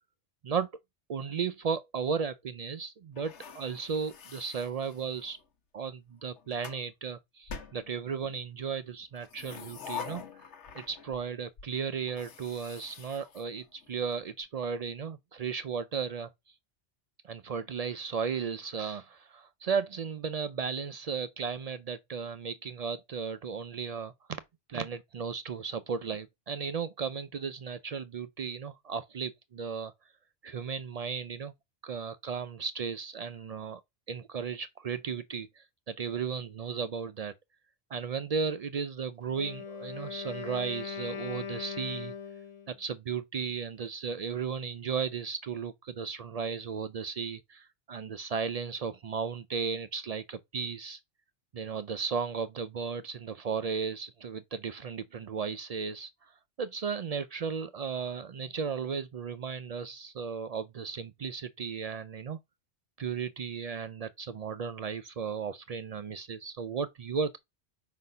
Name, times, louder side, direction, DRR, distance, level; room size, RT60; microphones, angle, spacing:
voice 1, 1.1-5.4 5.7-10.2 10.7-16.3 17.2-24.4 24.7-29.9 30.4-31.5 31.8-33.8 34.1-37.3 37.9-42.1 42.7-51.0 51.5-56.3 56.6-62.4 63.0-67.4, right 6 dB, 70° right, 0.3 m, -35 dB
sound 1, 3.2-5.4 6.2-6.8 7.5-8.4 9.1-11.3 11.6-11.7 12.1-14.1, left 7 dB, 75° left, 1.2 m, -45 dB
Wind instrument woodwind instrument, 39.3-42.8, left 7 dB, 30° left, 0.7 m, -40 dB
5.1 x 4.1 x 5.3 m
omnidirectional pair, 1.2 m